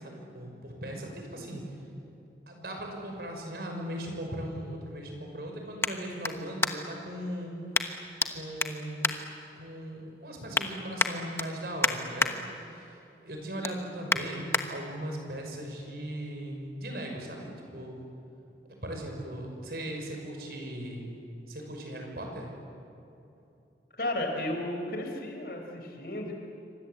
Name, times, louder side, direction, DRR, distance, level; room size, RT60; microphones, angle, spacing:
voice 1, 0.0-1.6 2.5-7.5 8.3-9.2 9.6-12.4 12.7-13.0 13.2-18.0 18.8-21.1 21.5-22.5, right 1 dB, 60° right, 2 dB, 5.9 m, -38 dB
sound 1, 3.0-7.1 7.7-8.3 8.6-9.9 10.3-10.7 11.0-12.3 12.7-13.0 13.3-14.6 15.2-15.3, left 3 dB, 15° left, 1.2 m, -31 dB
voice 2, 24.0-26.3, left 1 dB, 55° left, 3 dB, 4.6 m, -33 dB
28.0 x 25.5 x 8.4 m, 2.8 s
head